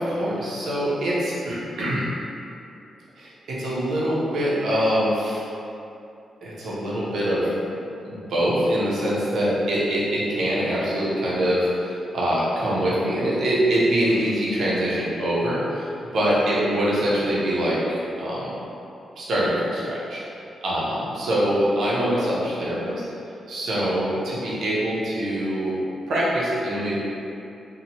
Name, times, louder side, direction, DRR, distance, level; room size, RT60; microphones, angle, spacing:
voice 1, 0.0-2.0 3.2-5.4 6.4-7.5 8.0-18.5 19.2-20.2 20.6-23.0 23.5-25.8 26.1-26.9, equal, 60° right, -7 dB, 0.6 m, -24 dB
2.7 x 2.1 x 2.8 m, 2.7 s
wide cardioid pair, 175°, 0 cm